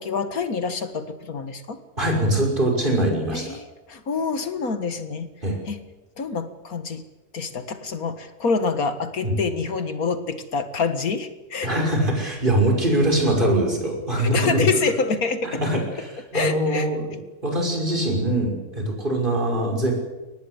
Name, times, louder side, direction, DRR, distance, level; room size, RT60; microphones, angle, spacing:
voice 1, 0.0-1.8 3.3-5.3 5.7-5.8 6.2-7.0 7.3-11.7 14.2-15.6 16.3-16.9, left 4 dB, 65° left, 9 dB, 2.1 m, -26 dB
voice 2, 2.0-3.6 5.4-5.6 9.2-9.4 11.6-14.7 15.4-17.1 17.4-19.9, right 1 dB, 30° right, 1 dB, 6.0 m, -22 dB
23.5 x 19.5 x 8.2 m, 1.1 s
omnidirectional pair, 1.6 m